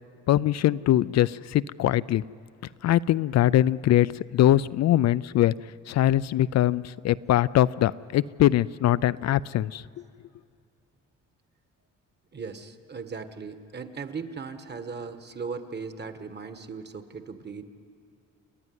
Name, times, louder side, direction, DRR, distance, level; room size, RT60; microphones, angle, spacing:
voice 1, 0.3-2.2 2.8-5.5 5.9-9.8, left 13 dB, 60° left, 17 dB, 0.4 m, -22 dB
voice 2, 12.3-17.7, right 5 dB, 35° right, 9 dB, 1.6 m, -38 dB
29.0 x 11.0 x 9.5 m, 2.5 s
cardioid pair, 90°, 30 cm